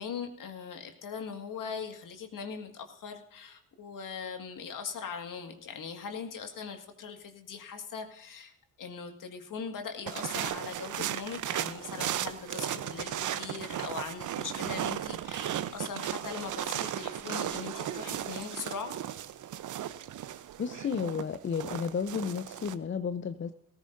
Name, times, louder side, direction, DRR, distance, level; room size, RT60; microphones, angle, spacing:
voice 1, 0.0-8.5 8.8-18.9, left 6 dB, 55° left, 5 dB, 2.0 m, -40 dB
sound 1, 10.1-22.7, right 11 dB, 55° right, 0.8 m, -36 dB
voice 2, 20.6-23.5, left 6 dB, 30° left, 11 dB, 0.7 m, -32 dB
18.5 x 14.5 x 2.6 m, 0.73 s
hypercardioid pair, 50°, 37 cm